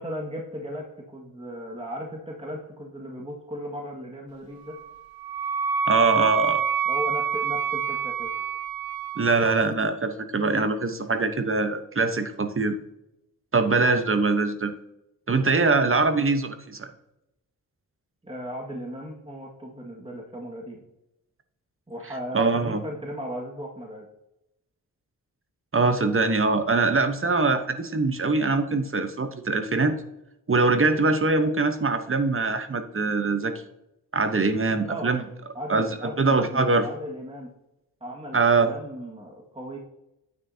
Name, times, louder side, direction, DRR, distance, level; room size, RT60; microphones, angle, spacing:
voice 1, 0.0-4.7 6.9-8.3 18.2-20.8 21.9-24.1 34.8-35.1 35.5-37.5 38.0-39.8, equal, 15° right, -2 dB, 1.9 m, -36 dB
Wind instrument woodwind instrument, 4.7-9.4, right 6 dB, 75° right, 0.8 m, -27 dB
voice 2, 5.9-6.6 9.2-12.8 13.5-14.7 15.3-16.9 22.3-22.8 25.7-29.9 30.5-33.6 34.1-35.2 35.7-35.9 36.2-36.9 38.3-38.7, right 3 dB, 35° right, 8 dB, 1.0 m, -23 dB
9.3 x 9.2 x 2.8 m, 0.87 s
cardioid pair, 65°, 36 cm